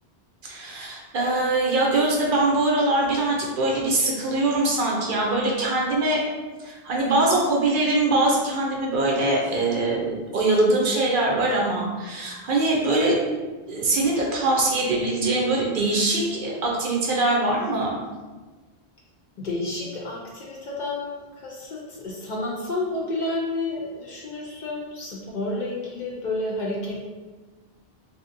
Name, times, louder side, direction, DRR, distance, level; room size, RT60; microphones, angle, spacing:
voice 1, 0.4-6.2 6.6-13.2 13.7-18.0, right 2 dB, 60° right, -2 dB, 0.7 m, -22 dB
voice 2, 19.4-27.1, left 2 dB, 55° left, -3 dB, 0.6 m, -30 dB
2.8 x 2.6 x 2.5 m, 1.3 s
omnidirectional pair, 1.0 m